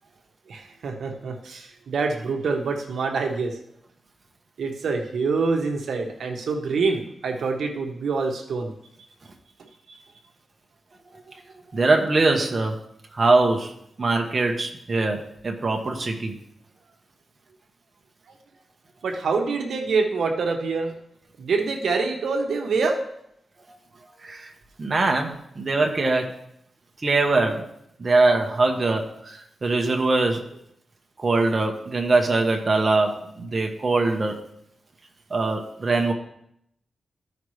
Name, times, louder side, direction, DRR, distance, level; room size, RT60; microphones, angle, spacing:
voice 1, 0.5-3.6 4.6-8.7 19.0-20.9 21.4-22.9, right 4 dB, 80° right, 3 dB, 1.0 m, -26 dB
voice 2, 11.7-12.8 13.1-13.7 14.0-16.3 24.2-24.5 24.8-26.3 27.0-27.7 28.0-30.4 31.2-34.4 35.3-36.1, right 3 dB, 35° right, 2 dB, 1.0 m, -22 dB
14.0 x 5.1 x 3.2 m, 0.74 s
wide cardioid pair, 120°, 0 cm